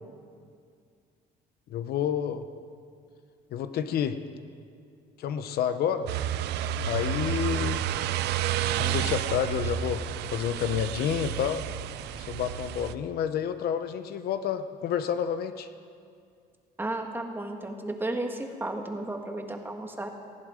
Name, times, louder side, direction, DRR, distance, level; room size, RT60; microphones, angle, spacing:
voice 1, 1.7-2.4 3.5-4.2 5.2-6.1 6.9-7.8 8.7-10.0 10.3-11.6 12.2-15.7, left 9 dB, 65° left, 10 dB, 0.8 m, -29 dB
sound 1, 6.1-12.9, right 10 dB, 80° right, 0.6 m, -30 dB
voice 2, 16.8-20.1, right 2 dB, 10° right, 4 dB, 1.6 m, -33 dB
18.5 x 15.0 x 5.0 m, 2.3 s
cardioid pair, 110°, 17 cm